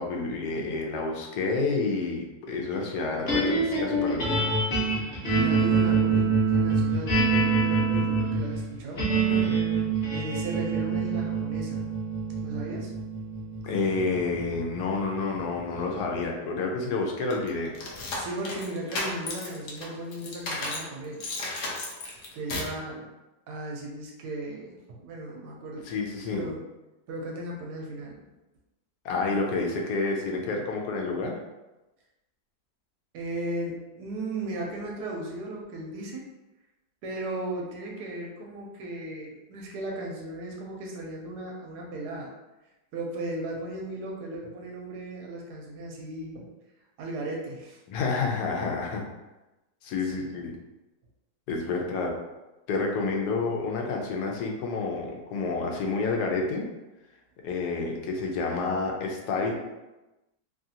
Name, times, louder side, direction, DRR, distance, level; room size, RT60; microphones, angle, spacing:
voice 1, 0.0-4.5 9.3-9.5 13.6-17.8 25.8-26.5 29.0-31.4 47.9-49.0 49.8-50.6 51.5-52.2 52.7-56.6 57.4-59.6, left 3 dB, 80° left, 0 dB, 1.2 m, -29 dB
sound 1, 3.3-15.6, right 4 dB, 45° left, 1.1 m, -26 dB
voice 2, 5.3-9.0 10.1-11.8 12.4-12.9 18.1-21.2 22.3-23.1 23.5-25.9 26.3-26.6 27.1-28.2 33.1-36.2 37.0-42.3 42.9-46.5 47.0-47.8 50.1-50.4, right 1 dB, 90° right, -1 dB, 1.2 m, -36 dB
sound 2, 17.3-20.9 21.2-22.8, left 2 dB, 65° left, 0.8 m, -34 dB
3.0 x 2.4 x 2.7 m, 1.0 s
omnidirectional pair, 1.7 m